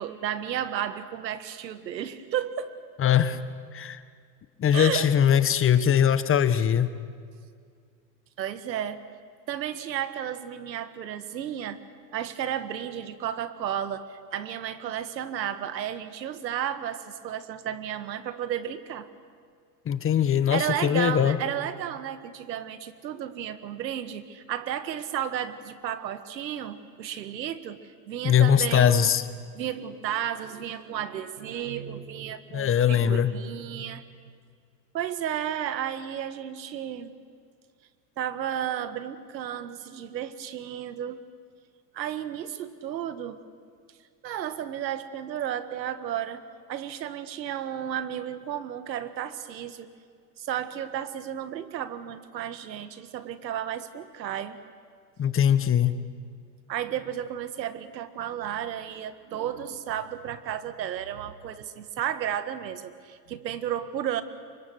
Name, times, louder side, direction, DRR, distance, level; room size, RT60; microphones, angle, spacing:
voice 1, 0.0-2.7 4.7-5.1 8.4-9.0 9.5-11.8 12.1-19.1 20.5-29.1 29.5-34.0 34.9-37.1 38.2-41.2 41.9-43.4 44.2-46.4 46.7-49.9 50.4-54.6 56.7-64.2, right 10 dB, 90° right, 12 dB, 1.7 m, -33 dB
voice 2, 3.0-3.4 3.7-4.0 4.6-6.9 19.8-21.4 28.2-29.3 32.5-33.3 55.2-56.0, left 9 dB, 25° left, 13 dB, 1.4 m, -21 dB
28.5 x 24.5 x 6.5 m, 2.1 s
hypercardioid pair, 110°, 50 cm